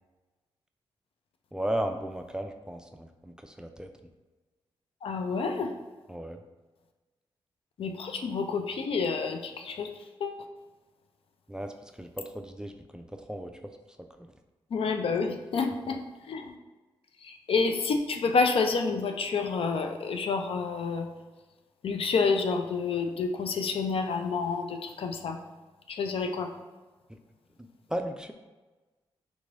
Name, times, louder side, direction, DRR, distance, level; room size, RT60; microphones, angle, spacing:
voice 1, 1.5-3.9 6.1-6.4 11.5-11.7 12.0-13.5 27.6-28.3, right 1 dB, 5° right, 5 dB, 0.3 m, -35 dB
voice 2, 5.0-5.7 7.8-9.9 10.2-10.4 14.7-16.0 16.3-16.5 17.2-21.1 21.8-25.4 25.9-26.5, left 4 dB, 60° left, 5 dB, 0.4 m, -29 dB
3.6 x 3.0 x 2.5 m, 1.2 s
supercardioid pair, 50°, 10 cm